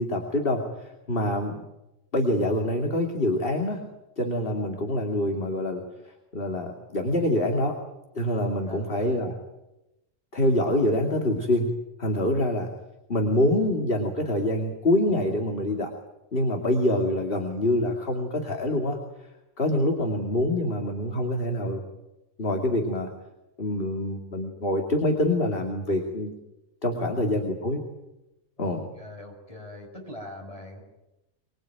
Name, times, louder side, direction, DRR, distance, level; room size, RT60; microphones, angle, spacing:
voice 1, 0.0-1.6 2.1-3.8 4.2-5.8 6.3-7.8 8.1-9.3 10.3-11.7 12.0-12.7 13.1-15.9 16.3-19.0 19.6-21.8 22.4-23.1 23.6-26.3 26.8-27.8 28.6-28.8, left 1 dB, 45° left, 3 dB, 2.7 m, -25 dB
voice 2, 8.6-9.2 20.0-20.1 20.6-20.7 27.0-27.5 28.6-30.8, left 1 dB, 25° left, 2 dB, 6.1 m, -42 dB
25.0 x 22.0 x 9.1 m, 0.95 s
omnidirectional pair, 1.4 m